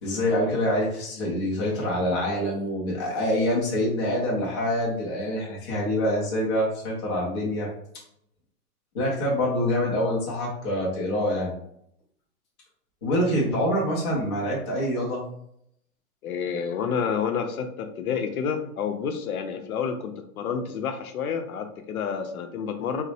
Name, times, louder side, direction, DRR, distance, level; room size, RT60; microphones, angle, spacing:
voice 1, 0.0-7.7 8.9-11.5 13.0-15.2, left 1 dB, 20° left, -4 dB, 0.3 m, -25 dB
voice 2, 16.2-23.0, left 6 dB, 70° left, 6 dB, 0.6 m, -29 dB
3.0 x 2.0 x 2.7 m, 0.72 s
hypercardioid pair, 120°, 45 cm